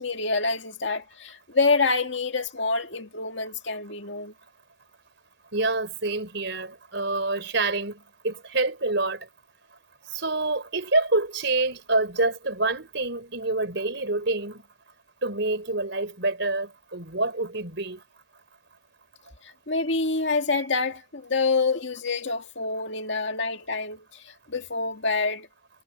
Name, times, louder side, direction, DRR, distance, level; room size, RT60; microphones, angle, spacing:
voice 1, 0.0-4.3 19.4-25.5, left 3 dB, 60° left, 2.3 m, -27 dB
voice 2, 5.5-9.3 10.1-14.6 15.2-18.0, right 2 dB, 60° right, 4.8 m, -27 dB
head